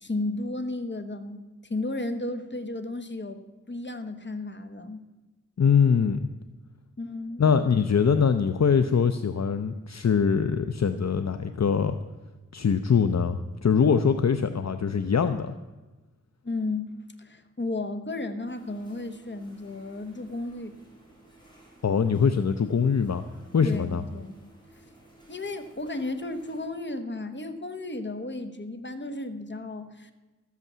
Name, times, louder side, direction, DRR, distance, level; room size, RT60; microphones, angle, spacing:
voice 1, 0.0-3.4 3.7-5.1 7.0-7.5 16.4-20.7 23.6-24.3 24.7-24.9 25.3-30.1, left 2 dB, 35° left, 8 dB, 1.2 m, -34 dB
voice 2, 5.6-6.2 7.4-12.0 12.5-15.6 21.8-23.2 23.5-24.0, left 6 dB, 60° left, 9 dB, 0.6 m, -23 dB
sound 1, 18.5-26.7, right 1 dB, 15° left, 5.2 m, -55 dB
13.5 x 8.3 x 7.3 m, 1.2 s
wide cardioid pair, 65°, 31 cm